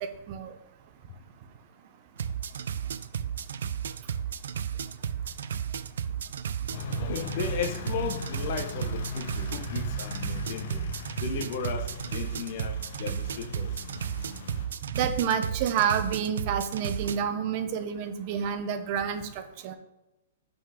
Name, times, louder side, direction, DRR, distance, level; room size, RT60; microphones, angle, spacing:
sound 1, 2.2-17.2, right 8 dB, 80° right, 0.4 m, -33 dB
sound 2, 6.7-14.7, left 4 dB, 65° left, 1.1 m, -39 dB
voice 1, 7.0-10.9 11.2-13.8, left 6 dB, 45° left, 0.7 m, -35 dB
voice 2, 14.9-19.2 19.6-19.8, right 8 dB, 40° right, 0.7 m, -28 dB
5.7 x 4.0 x 4.9 m
hypercardioid pair, 160°, 0 cm